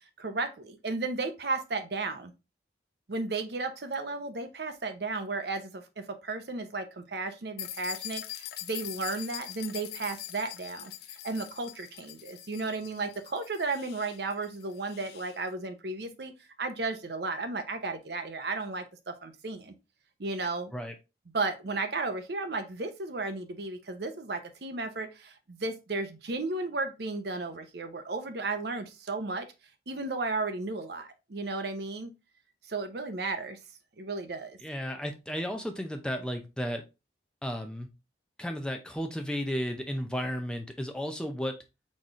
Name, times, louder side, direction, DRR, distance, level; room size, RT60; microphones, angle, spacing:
voice 1, 0.2-2.3 3.1-10.9 11.2-16.3 16.6-19.7 20.2-20.7 21.3-29.5 29.9-32.1 32.7-33.6 34.0-34.6, right 3 dB, 65° right, 0.7 m, -34 dB
sound 1, 7.6-15.4, left 13 dB, 60° left, 0.4 m, -43 dB
voice 2, 34.6-36.8 37.4-37.9 38.4-41.5, equal, 5° left, 0.6 m, -33 dB
4.2 x 3.2 x 3.6 m
head